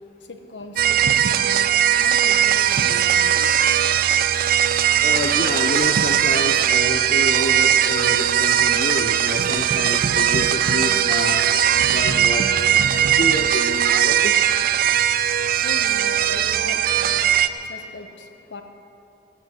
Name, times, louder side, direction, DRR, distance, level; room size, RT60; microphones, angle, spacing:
voice 1, 0.2-1.7 2.0-3.5 15.6-18.6, left 2 dB, 80° left, 6 dB, 1.1 m, -38 dB
sound 1, 0.8-17.5, right 10 dB, 55° right, 0.4 m, -19 dB
voice 2, 5.0-11.4 11.9-14.3, left 2 dB, 45° left, 3 dB, 0.7 m, -28 dB
15.5 x 8.9 x 7.7 m, 3.0 s
head